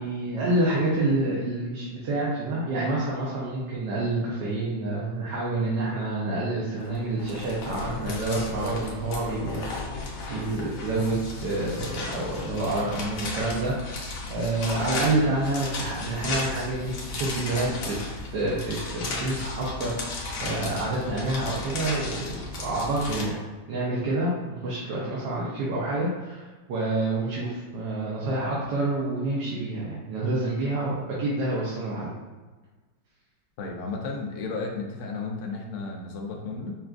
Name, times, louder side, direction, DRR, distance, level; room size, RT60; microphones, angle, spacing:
voice 1, 0.0-9.7 10.3-13.7 14.3-18.0 18.3-23.4 23.7-26.4 26.7-30.9 31.2-32.1, right 2 dB, 70° right, -6 dB, 1.4 m, -28 dB
sound 1, 6.8-23.2, left 3 dB, 85° left, 1.5 m, -35 dB
voice 2, 33.6-36.8, left 3 dB, 65° left, 0 dB, 0.7 m, -33 dB
5.8 x 2.4 x 2.4 m, 1.3 s
omnidirectional pair, 2.0 m